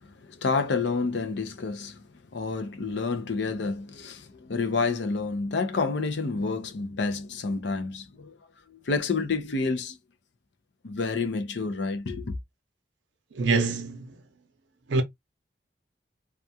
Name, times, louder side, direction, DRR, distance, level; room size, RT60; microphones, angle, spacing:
voice 1, 0.0-2.0 2.3-8.4 8.7-10.0 10.8-12.3, left 4 dB, 70° left, 0.6 m, -29 dB
voice 2, 13.3-14.2 14.9-15.0, right 3 dB, 80° right, 0.6 m, -25 dB
2.4 x 2.3 x 2.6 m
head